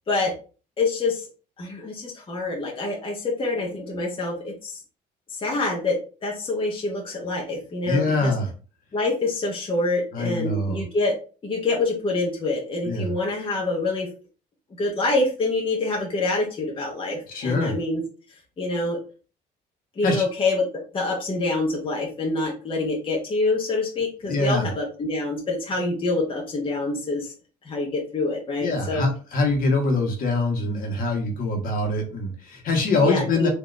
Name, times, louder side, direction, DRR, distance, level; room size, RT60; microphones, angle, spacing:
voice 1, 0.8-1.2 1.6-4.8 5.3-8.3 8.9-11.1 11.4-14.1 14.8-18.0 18.6-19.0 20.0-20.6 20.9-27.3 27.6-29.0 33.0-33.5, left 2 dB, 30° left, -1 dB, 1.1 m, -26 dB
voice 2, 7.8-8.5 10.1-10.8 12.8-13.1 17.3-17.7 20.0-20.2 24.3-24.7 28.6-33.5, left 2 dB, 55° left, 2 dB, 1.3 m, -24 dB
3.9 x 2.8 x 3.2 m, 0.36 s
cardioid pair, 110°, 17 cm